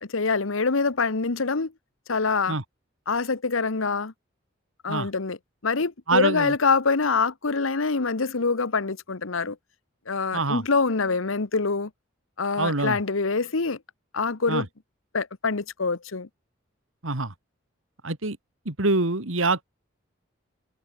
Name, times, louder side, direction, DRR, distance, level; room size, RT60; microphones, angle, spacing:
voice 1, 0.0-1.7 2.1-2.6 3.1-4.1 4.8-5.4 5.6-9.6 10.1-11.9 12.4-13.8 14.1-14.7 15.1-16.3, left 4 dB, 85° left, 1.1 m, -25 dB
voice 2, 6.1-6.5 10.3-10.6 12.6-13.0 14.5-14.6 17.0-17.3 18.0-18.4 18.7-19.7, right 3 dB, 85° right, 2.5 m, -25 dB
head